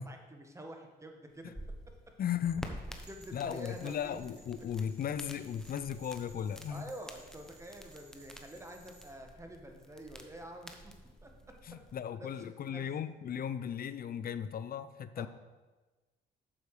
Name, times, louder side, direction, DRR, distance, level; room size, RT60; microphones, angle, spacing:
voice 1, 0.0-1.6 1.9-2.2 3.1-4.2 6.7-11.8 12.1-12.9 15.2-15.3, right 1 dB, 15° right, 3 dB, 1.4 m, -48 dB
sound 1, 1.3-11.9, equal, 5° left, 0.9 m, -50 dB
voice 2, 2.2-2.8 3.3-6.8 11.7-15.3, left 8 dB, 50° left, 13 dB, 0.6 m, -36 dB
sound 2, 3.0-9.1, right 1 dB, 60° right, 2.3 m, -61 dB
8.5 x 6.9 x 4.9 m, 1.2 s
cardioid pair, 90°, 20 cm